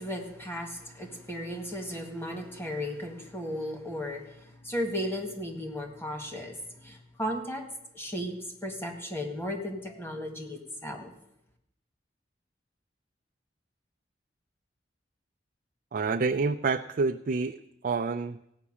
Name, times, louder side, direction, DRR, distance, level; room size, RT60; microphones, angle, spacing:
voice 1, 0.0-7.7 7.9-8.4 8.6-11.1, equal, 15° left, 3 dB, 1.8 m, -35 dB
voice 2, 15.9-17.6 17.8-18.4, right 4 dB, 50° right, 5 dB, 0.4 m, -28 dB
16.5 x 5.9 x 8.5 m, 0.80 s
head